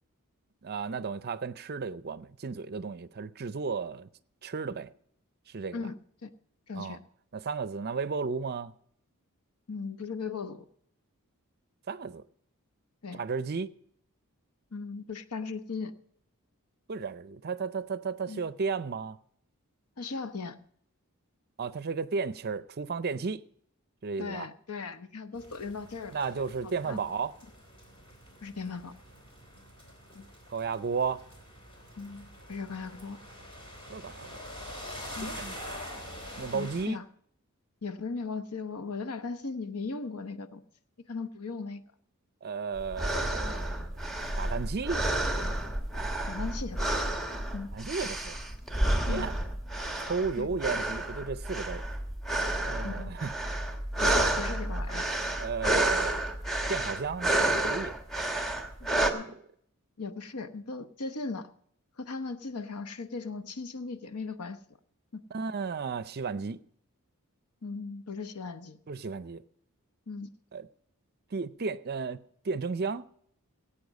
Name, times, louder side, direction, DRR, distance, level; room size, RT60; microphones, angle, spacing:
voice 1, 0.6-4.1 4.4-4.9 5.5-5.8 6.7-7.0 7.3-8.7 11.9-12.2 13.1-13.7 16.9-19.2 21.6-23.4 24.0-24.5 26.1-27.3 30.5-31.2 33.9-34.3 35.2-35.5 36.4-37.0 42.4-43.9 44.4-45.0 47.7-48.4 49.1-49.4 50.0-51.8 52.6-53.3 54.0-54.3 55.4-56.2 56.7-58.0 58.8-59.4 65.3-66.6 68.9-69.4 70.5-70.7 71.3-73.1, right 5 dB, 45° right, 0.5 m, -34 dB
voice 2, 5.7-6.3 6.7-7.0 9.7-10.7 13.0-13.2 14.7-15.9 18.3-18.4 20.0-20.6 24.2-26.2 26.8-27.0 28.4-29.0 30.1-30.3 32.0-33.2 35.2-35.3 36.5-37.0 37.8-40.6 41.1-41.8 46.3-47.0 47.5-47.7 49.1-49.3 50.4-50.5 52.8-53.2 54.0-55.1 58.8-59.4 60.0-61.5 62.0-64.6 65.1-65.2 67.6-68.8 70.1-70.3, left 4 dB, 85° left, 0.9 m, -38 dB
sound 1, 25.4-36.9, equal, 25° left, 3.3 m, -45 dB
sound 2, 42.8-59.1, right 1 dB, ahead, 1.3 m, -30 dB
18.0 x 8.7 x 5.3 m
head